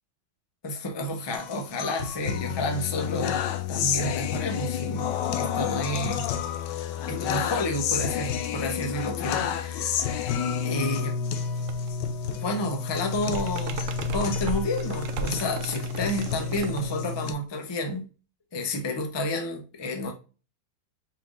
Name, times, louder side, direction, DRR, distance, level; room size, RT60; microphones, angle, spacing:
voice 1, 0.6-3.4 3.7-5.0 5.3-6.2 7.1-11.2 12.4-13.9 14.1-18.0 18.5-20.1, left 1 dB, 30° left, 0.4 m, -30 dB
sound 1, 1.3-17.3, left 7 dB, 75° left, 1.2 m, -30 dB
sound 2, 11.3-11.9 12.2-17.4, right 5 dB, 85° right, 0.7 m, -36 dB
5.5 x 3.7 x 2.5 m
omnidirectional pair, 2.0 m